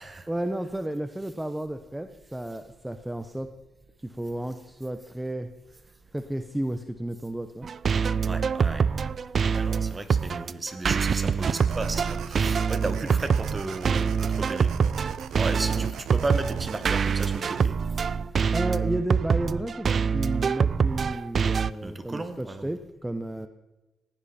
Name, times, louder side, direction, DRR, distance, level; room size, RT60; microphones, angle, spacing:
voice 1, 0.3-3.5 4.0-5.5 6.1-7.7 15.7-15.9 18.5-19.9 20.1-23.5, right 1 dB, 10° right, 9 dB, 0.9 m, -32 dB
sound 1, 7.6-21.7, right 6 dB, 45° right, 0.5 m, -25 dB
voice 2, 8.3-8.9 9.5-14.7 15.3-17.8 21.8-22.7, right 2 dB, 25° right, 9 dB, 1.7 m, -34 dB
sound 2, 11.4-17.7, right 8 dB, 75° right, 1.0 m, -40 dB
18.5 x 16.0 x 4.3 m, 1.1 s
cardioid pair, 90°, 0 cm